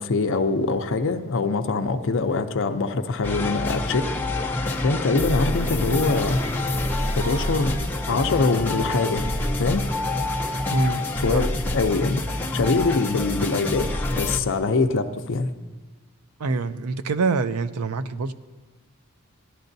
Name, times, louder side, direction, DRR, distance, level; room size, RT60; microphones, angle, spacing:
voice 1, 0.0-4.1 4.8-6.4 7.1-9.2 9.6-9.8 11.2-15.5, left 3 dB, 60° left, 8 dB, 0.5 m, -23 dB
sound 1, 3.2-14.4, left 2 dB, 10° left, 0.6 m, -27 dB
voice 2, 10.7-11.0 11.3-11.4 16.4-18.3, right 4 dB, 80° right, 13 dB, 0.5 m, -25 dB
17.0 x 11.5 x 2.7 m, 1.3 s
head